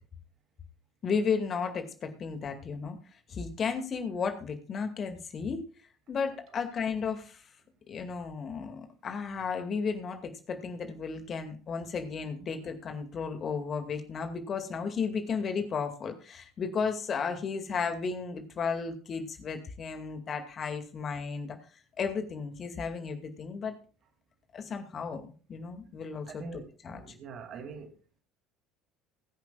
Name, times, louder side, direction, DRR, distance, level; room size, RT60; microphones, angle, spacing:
voice 1, 1.0-3.0 3.3-5.6 6.1-7.4 7.9-21.6 22.0-23.7 24.5-25.2 25.5-27.0, left 5 dB, 40° left, 2.2 m, -34 dB
voice 2, 26.3-27.9, right 5 dB, 45° right, 2.4 m, -44 dB
22.0 x 10.5 x 2.4 m
figure-of-eight pair, 60°, 0 cm